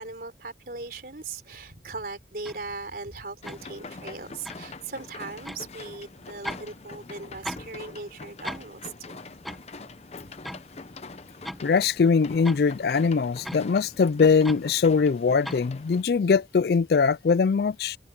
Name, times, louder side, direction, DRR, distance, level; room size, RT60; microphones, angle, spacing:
voice 1, 0.0-9.2, right 3 dB, 55° right, 3.9 m, -39 dB
sound 1, 2.4-2.6 3.4-3.6 4.4-4.7 5.4-5.7 6.4-6.7 7.0-7.7 8.0-8.1 8.4-8.7 9.4-9.6 10.4-10.6 11.2-11.6 12.4-12.6 13.4-13.6 14.4-14.7 15.4-15.6, equal, ahead, 1.0 m, -37 dB
sound 2, 3.4-16.0, left 3 dB, 35° left, 0.7 m, -44 dB
voice 2, 11.6-18.0, left 5 dB, 60° left, 0.4 m, -22 dB
head